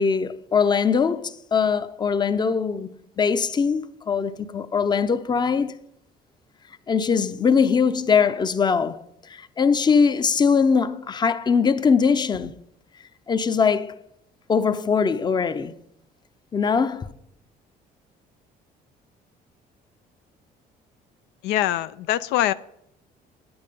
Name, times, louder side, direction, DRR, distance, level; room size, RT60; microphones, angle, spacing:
voice 1, 0.0-5.8 6.9-9.0 9.3-12.5 13.3-13.9 14.5-15.7 16.5-17.1, left 5 dB, 25° left, 0.6 m, -21 dB
voice 2, 21.4-22.5, left 13 dB, 85° left, 0.4 m, -23 dB
9.2 x 8.7 x 5.3 m
cardioid pair, 110°, 17 cm